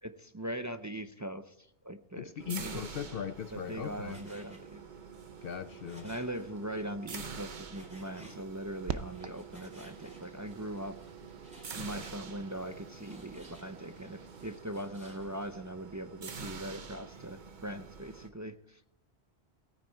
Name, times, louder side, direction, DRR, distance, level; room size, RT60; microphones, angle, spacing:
voice 1, 0.0-2.8 3.5-4.8 6.0-10.9 11.7-18.8, right 1 dB, 25° right, 9 dB, 0.4 m, -41 dB
voice 2, 2.1-4.2 5.4-6.1, left 8 dB, 60° left, 12 dB, 0.7 m, -39 dB
sound 1, 2.4-18.3, right 5 dB, 45° right, 1.0 m, -47 dB
Frying (food), 3.6-15.5, equal, 5° right, 3.2 m, -59 dB
sound 2, 8.9-14.6, right 7 dB, 70° right, 1.0 m, -46 dB
18.5 x 9.3 x 4.5 m, 0.76 s
omnidirectional pair, 1.2 m